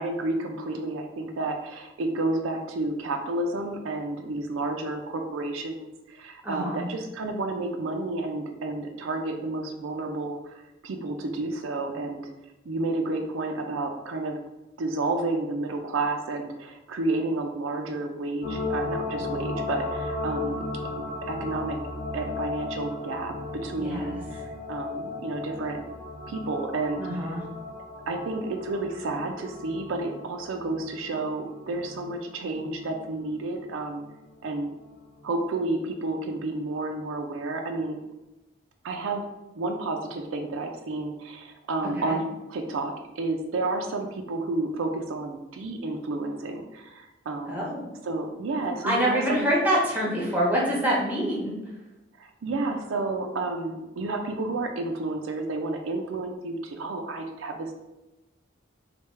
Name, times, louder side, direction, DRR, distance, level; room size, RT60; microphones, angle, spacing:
voice 1, 0.0-10.5 10.8-12.3 12.7-14.4 14.8-20.7 21.3-21.8 22.1-23.3 23.6-25.8 26.3-27.3 28.1-34.0 34.4-34.7 35.2-38.0 38.8-39.2 39.6-42.2 42.5-47.6 48.0-49.5 52.2-57.7, right 2 dB, 85° right, 4 dB, 0.4 m, -31 dB
voice 2, 6.4-6.8 23.8-24.2 27.0-27.4 42.0-42.2 47.5-47.8 48.8-51.7, equal, 10° right, -4 dB, 0.7 m, -26 dB
sound 1, 18.4-34.1 34.5-34.6, left 3 dB, 55° left, 0.9 m, -36 dB
3.3 x 2.3 x 3.2 m, 0.99 s
head